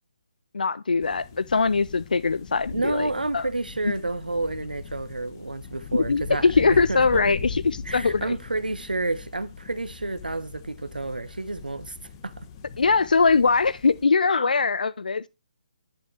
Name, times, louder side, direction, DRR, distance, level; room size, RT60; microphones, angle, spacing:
voice 1, 0.5-3.5 5.9-8.3 12.8-15.3, left 4 dB, 70° left, 0.4 m, -22 dB
sound 1, 1.0-14.0, left 5 dB, 30° left, 1.1 m, -40 dB
voice 2, 2.7-7.3 7.9-11.9 12.2-12.3, right 2 dB, 80° right, 1.0 m, -30 dB
11.0 x 6.8 x 3.2 m
figure-of-eight pair, 140°, 5 cm